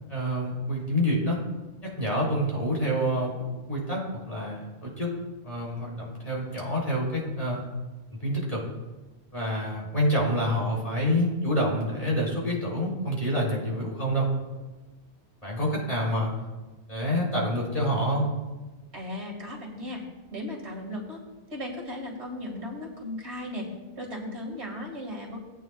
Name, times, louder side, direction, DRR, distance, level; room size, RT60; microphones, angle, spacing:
voice 1, 0.1-1.4 1.8-5.1 5.4-7.6 8.1-8.6 9.3-14.3 15.4-16.3 16.9-18.2, equal, 35° left, -4 dB, 3.6 m, -27 dB
voice 2, 18.9-20.0 20.3-21.2 21.5-23.7 24.0-25.4, left 1 dB, 70° right, -1 dB, 2.4 m, -36 dB
18.0 x 8.8 x 2.4 m, 1.1 s
omnidirectional pair, 1.2 m